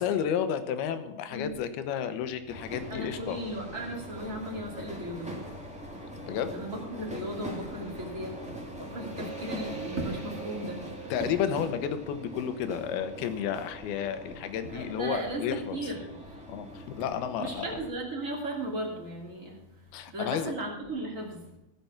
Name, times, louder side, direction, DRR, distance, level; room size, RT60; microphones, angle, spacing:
voice 1, 0.0-3.4 6.3-6.5 11.1-15.8 16.5-17.7 19.9-20.5, left 8 dB, 80° left, 10 dB, 2.9 m, -31 dB
sound 1, 2.5-17.9, right 1 dB, 5° right, 1.4 m, -42 dB
voice 2, 2.9-6.0 6.4-11.1 14.7-16.4 17.4-21.5, right 1 dB, 25° right, -1 dB, 2.4 m, -37 dB
15.5 x 6.9 x 5.9 m, 0.92 s
omnidirectional pair, 4.5 m